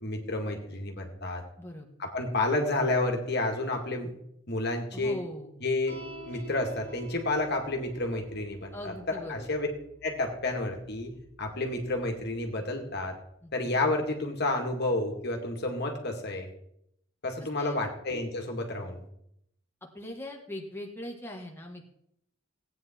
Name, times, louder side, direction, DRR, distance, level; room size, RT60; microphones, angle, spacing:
voice 1, 0.0-1.4 2.0-4.1 4.5-5.2 5.6-6.0 6.3-9.7 10.0-11.1 11.4-13.2 13.5-16.5 17.2-19.0, left 2 dB, 55° left, 3 dB, 2.1 m, -30 dB
voice 2, 1.6-1.9 4.9-5.5 8.7-9.5 13.4-13.5 17.6-17.8 19.8-21.8, left 1 dB, 10° left, 0 dB, 1.6 m, -40 dB
sound 1, 5.9-12.5, right 1 dB, 75° right, 4.6 m, -50 dB
16.0 x 9.3 x 4.4 m, 0.75 s
head